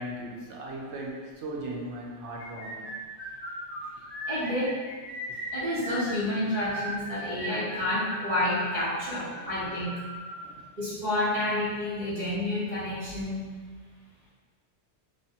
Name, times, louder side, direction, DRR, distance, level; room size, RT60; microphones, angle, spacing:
voice 1, 0.0-2.9 5.3-5.4 9.3-9.5 10.4-10.6, right 1 dB, 85° right, -2 dB, 0.9 m, -38 dB
sound 1, 2.4-10.4, equal, 35° left, 1.0 m, -38 dB
voice 2, 4.3-4.8 5.5-10.0 10.8-13.4, left 1 dB, 45° right, -11 dB, 0.8 m, -29 dB
3.0 x 2.2 x 2.7 m, 1.5 s
omnidirectional pair, 1.2 m